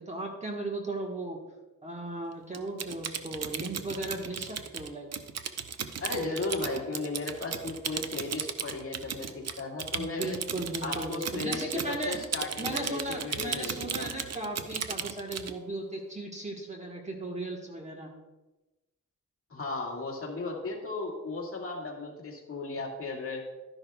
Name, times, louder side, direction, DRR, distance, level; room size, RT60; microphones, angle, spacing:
voice 1, 0.0-1.4 1.8-5.1 10.0-12.2 12.6-18.1, right 2 dB, 20° right, 0 dB, 1.3 m, -36 dB
Typing, 2.5-15.5, right 7 dB, 50° right, 0.6 m, -36 dB
voice 2, 6.0-10.4 10.8-14.1 19.5-23.4, left 3 dB, 40° left, -1 dB, 1.9 m, -35 dB
12.0 x 10.5 x 2.3 m, 1.1 s
wide cardioid pair, 130°, 33 cm